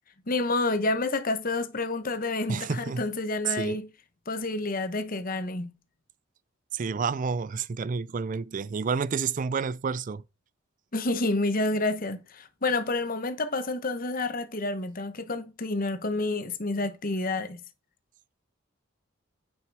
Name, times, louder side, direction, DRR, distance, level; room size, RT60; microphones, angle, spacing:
voice 1, 0.3-3.9 4.3-5.7 10.9-17.6, left 2 dB, 45° left, 1.1 m, -29 dB
voice 2, 2.5-3.0 3.4-3.8 6.7-10.2, right 5 dB, 40° right, 0.4 m, -29 dB
9.3 x 5.9 x 4.8 m
head